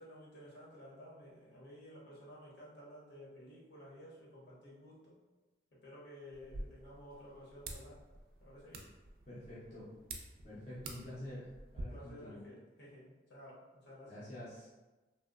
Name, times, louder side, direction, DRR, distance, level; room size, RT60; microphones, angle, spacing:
voice 1, 0.0-5.2 5.7-8.0 8.4-8.9 10.8-10.9 11.8-14.3, equal, 70° left, -6 dB, 0.9 m, -54 dB
sound 1, 6.3-11.8, right 2 dB, 55° right, 0.3 m, -49 dB
voice 2, 9.3-9.9 10.4-11.5 11.7-12.4 14.1-14.7, left 1 dB, 40° left, -9 dB, 0.6 m, -47 dB
2.8 x 2.0 x 2.3 m, 1.1 s
head